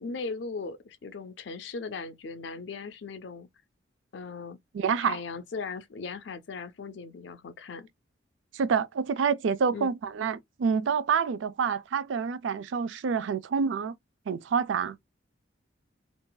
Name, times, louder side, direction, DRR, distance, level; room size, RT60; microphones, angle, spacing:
voice 1, 0.0-3.5 4.1-4.6 5.0-7.9 9.7-9.9, left 4 dB, 65° left, 0.4 m, -38 dB
voice 2, 4.7-5.2 8.5-13.9 14.3-15.0, right 6 dB, 75° right, 0.4 m, -27 dB
3.8 x 2.4 x 2.2 m
head